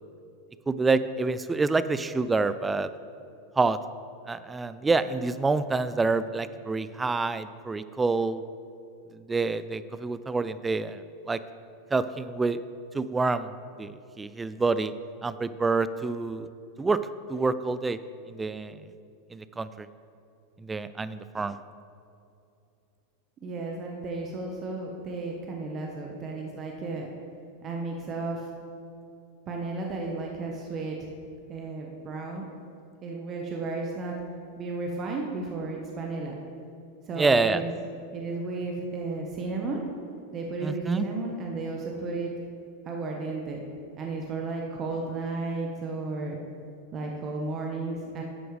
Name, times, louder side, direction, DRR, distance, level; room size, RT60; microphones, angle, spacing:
voice 1, 0.7-2.9 3.6-3.8 4.3-8.4 9.1-11.4 11.9-12.6 12.9-14.9 15.2-16.5 16.8-17.0 17.3-18.0 18.3-18.8 19.3-19.9 20.6-21.6 37.2-37.6 40.6-41.1, right 3 dB, 15° right, 14 dB, 0.4 m, -27 dB
voice 2, 23.4-27.1 27.6-28.4 29.5-31.1 31.5-32.4 33.0-34.1 34.6-36.4 37.1-37.7 38.1-39.8 40.3-42.3 42.9-43.6 44.0-46.4 46.9-48.2, right 3 dB, 35° right, 0 dB, 1.1 m, -33 dB
11.0 x 7.8 x 3.3 m, 2.6 s
hypercardioid pair, 105°, 0 cm